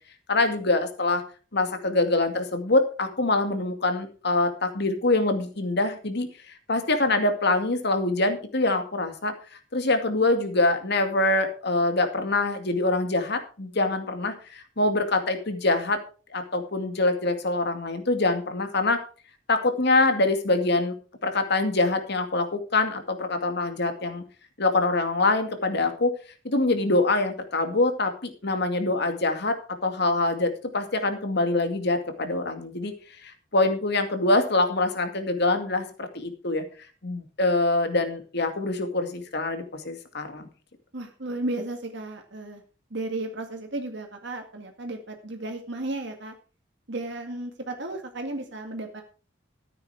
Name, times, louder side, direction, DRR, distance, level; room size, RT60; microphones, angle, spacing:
voice 1, 0.3-1.2 1.5-9.3 9.7-16.0 16.3-19.0 19.5-20.9 21.2-24.2 24.6-26.1 26.4-29.6 29.8-32.9 33.2-36.6 37.0-40.5, left 2 dB, 60° left, 7 dB, 2.3 m, -24 dB
voice 2, 40.9-42.6 42.9-46.3 46.9-49.0, right 2 dB, 65° right, 4 dB, 2.1 m, -34 dB
14.0 x 9.1 x 4.9 m, 0.38 s
head